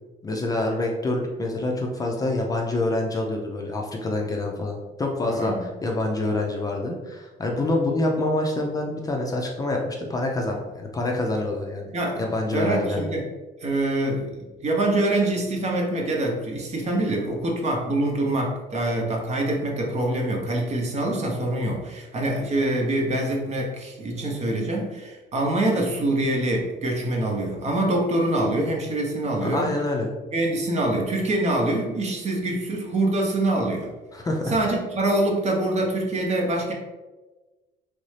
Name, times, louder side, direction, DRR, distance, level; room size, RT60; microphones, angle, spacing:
voice 1, 0.2-11.9 12.2-13.1 29.4-30.1 34.1-34.6, left 2 dB, 20° left, 0 dB, 0.5 m, -26 dB
voice 2, 5.3-5.7 11.9-12.2 12.5-13.3 13.6-29.7 30.3-33.9 34.5-36.7, right 1 dB, 40° right, 0 dB, 0.8 m, -25 dB
3.2 x 2.6 x 3.2 m, 1.2 s
cardioid pair, 110°, 17 cm